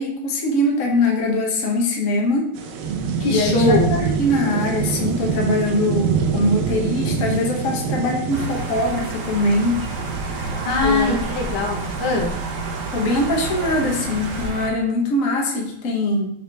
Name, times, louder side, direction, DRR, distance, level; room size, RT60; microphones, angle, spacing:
voice 1, 0.0-2.5 3.3-9.8 10.8-11.1 12.9-16.3, left 2 dB, 45° left, -1 dB, 1.5 m, -22 dB
sound 1, 2.5-14.5, right 6 dB, 85° right, 1.7 m, -27 dB
voice 2, 3.2-4.0 10.4-12.4, left 3 dB, 70° left, 0 dB, 2.0 m, -22 dB
sound 2, 8.3-14.7, right 3 dB, 45° right, 1.3 m, -29 dB
6.0 x 5.4 x 3.4 m, 0.73 s
omnidirectional pair, 2.3 m